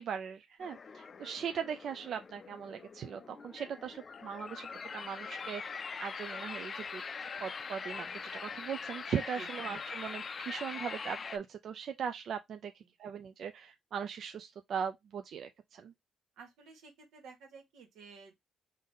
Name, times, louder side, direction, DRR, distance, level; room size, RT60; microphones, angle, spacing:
voice 1, 0.0-7.0 7.4-15.9, right 7 dB, 65° right, 0.4 m, -39 dB
sound 1, 0.6-11.4, left 5 dB, 40° left, 0.4 m, -43 dB
voice 2, 16.4-18.4, right 4 dB, 90° right, 1.5 m, -52 dB
3.9 x 2.6 x 3.6 m
cardioid pair, 90°, 0 cm